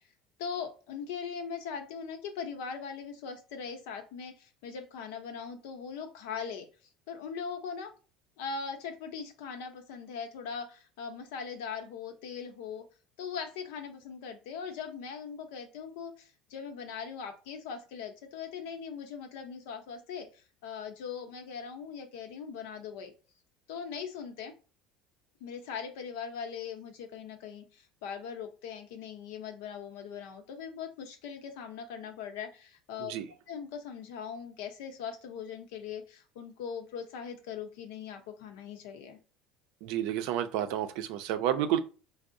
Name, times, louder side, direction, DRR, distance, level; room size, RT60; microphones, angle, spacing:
voice 1, 0.4-6.7 7.1-7.9 8.4-12.8 13.2-23.1 23.7-24.5 25.4-33.1 33.5-39.2, left 6 dB, 85° left, 0.7 m, -40 dB
voice 2, 39.8-41.8, right 11 dB, 70° right, 0.4 m, -30 dB
4.6 x 2.0 x 2.6 m
cardioid pair, 165°, 0 cm